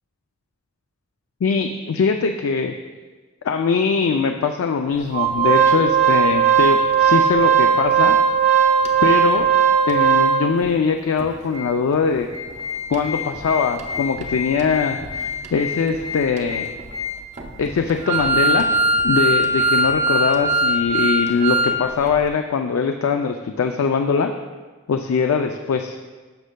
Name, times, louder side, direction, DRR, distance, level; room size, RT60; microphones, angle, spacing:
voice 1, 1.4-2.7 3.4-8.2 9.0-9.5 9.9-12.3 12.9-16.7 17.6-18.7 19.0-24.3 24.9-26.0, left 5 dB, 80° left, 5 dB, 0.4 m, -21 dB
Organ, 5.1-10.7 11.2-11.3 11.5-11.7 12.2-21.8 22.1-22.2, right 5 dB, 35° right, 0.5 m, -19 dB
11.5 x 6.2 x 2.2 m, 1.3 s
head